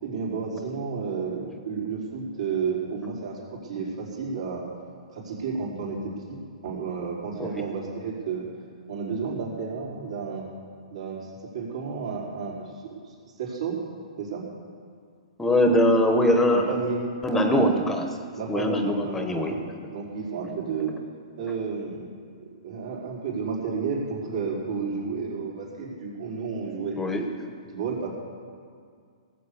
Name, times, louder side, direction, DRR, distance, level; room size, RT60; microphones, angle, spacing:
voice 1, 0.0-4.6 5.1-8.5 8.9-10.4 10.9-12.7 13.0-13.8 14.2-14.5 16.5-17.8 18.3-19.6 19.9-20.9 21.4-22.1 22.6-27.0 27.7-28.1, right 5 dB, 70° right, -4 dB, 4.7 m, -32 dB
voice 2, 15.4-16.7 17.2-18.0 18.5-19.6 27.0-27.2, left 1 dB, 10° left, 5 dB, 0.9 m, -22 dB
18.0 x 7.8 x 7.0 m, 2.2 s
hypercardioid pair, 145°, 4 cm